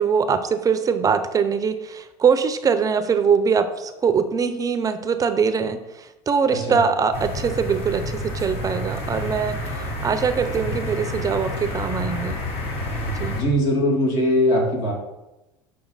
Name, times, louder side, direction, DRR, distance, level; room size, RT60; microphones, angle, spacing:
voice 1, 0.0-12.4 13.2-13.4, right 6 dB, 25° right, 10 dB, 0.6 m, -22 dB
sound 1, 7.1-13.4, left 1 dB, 50° left, 1.9 m, -29 dB
voice 2, 13.3-14.9, left 1 dB, 75° left, -2 dB, 2.6 m, -20 dB
7.0 x 4.9 x 4.0 m, 1.0 s
supercardioid pair, 105°, 13 cm